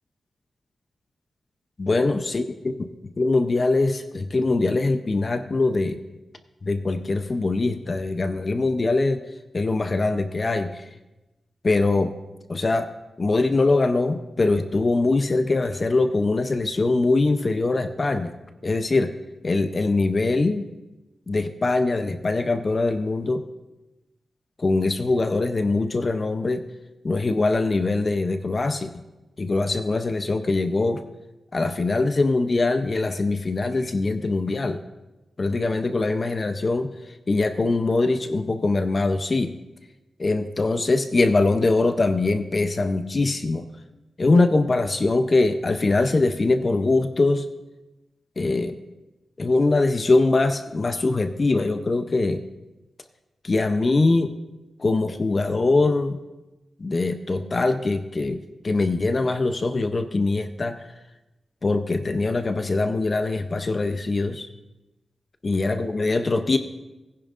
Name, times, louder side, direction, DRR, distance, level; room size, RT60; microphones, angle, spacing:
voice 1, 1.8-2.4 3.2-6.0 6.6-9.2 9.5-10.9 11.6-12.1 12.5-12.9 13.2-18.3 18.6-19.1 19.4-20.7 21.3-23.4 24.6-26.6 27.0-28.9 29.4-31.0 31.5-34.8 35.4-36.9 37.3-39.5 40.2-43.7 44.2-47.5 48.4-48.8 49.4-52.4 53.4-54.4 54.8-56.2 56.8-60.9 61.6-64.5 65.4-66.6, left 3 dB, 35° left, 8 dB, 0.6 m, -22 dB
20.0 x 10.5 x 2.5 m, 1.0 s
wide cardioid pair, 110°, 0 cm